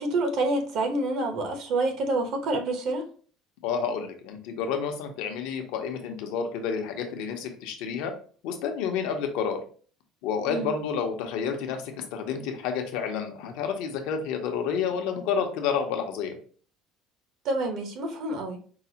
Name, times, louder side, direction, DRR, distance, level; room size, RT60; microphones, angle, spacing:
voice 1, 0.0-3.0 10.5-10.7 17.4-18.6, right 2 dB, 55° right, 4 dB, 0.9 m, -27 dB
voice 2, 3.6-8.1 8.4-9.6 10.2-16.4, left 6 dB, 75° left, 4 dB, 0.7 m, -30 dB
4.7 x 2.0 x 2.8 m, 0.43 s
cardioid pair, 130°, 0 cm